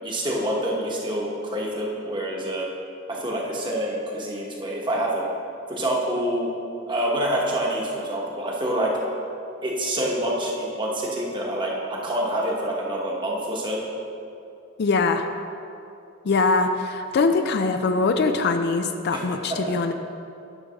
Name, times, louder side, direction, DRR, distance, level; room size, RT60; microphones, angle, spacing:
voice 1, 0.0-2.7 3.1-5.3 5.7-6.5 6.9-8.9 9.6-13.8 19.1-19.2 19.5-19.7, right 1 dB, 25° right, -3 dB, 1.2 m, -27 dB
voice 2, 14.8-15.2 16.2-19.9, left 3 dB, 55° left, 7 dB, 0.4 m, -22 dB
9.7 x 3.4 x 6.2 m, 2.6 s
head